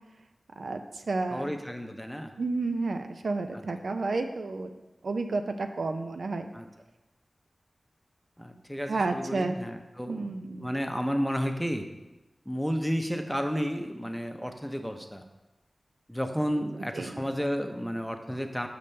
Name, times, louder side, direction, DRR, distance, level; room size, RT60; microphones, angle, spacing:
voice 1, 0.6-1.5 2.4-4.7 5.0-6.5 8.9-9.6 10.1-10.7 16.9-17.3, right 3 dB, 85° right, 7 dB, 0.5 m, -31 dB
voice 2, 1.3-2.3 3.5-3.6 6.5-6.7 8.4-10.3 10.6-11.8 12.5-15.2 16.1-18.7, equal, ahead, 5 dB, 0.6 m, -32 dB
6.9 x 6.6 x 3.3 m, 1.0 s
wide cardioid pair, 85°, 0 cm